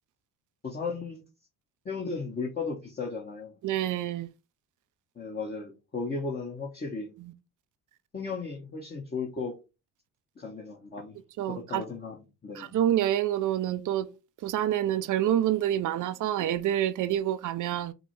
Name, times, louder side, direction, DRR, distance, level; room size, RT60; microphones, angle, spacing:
voice 1, 0.6-1.2 1.8-3.5 5.2-7.1 8.1-9.5 10.4-11.1 11.4-12.8, left 4 dB, 25° left, 1.1 m, -35 dB
voice 2, 3.6-4.3 11.4-11.8 12.6-14.1 14.4-17.9, right 11 dB, 55° right, 0.5 m, -27 dB
5.1 x 2.1 x 3.1 m
cardioid pair, 90°, 37 cm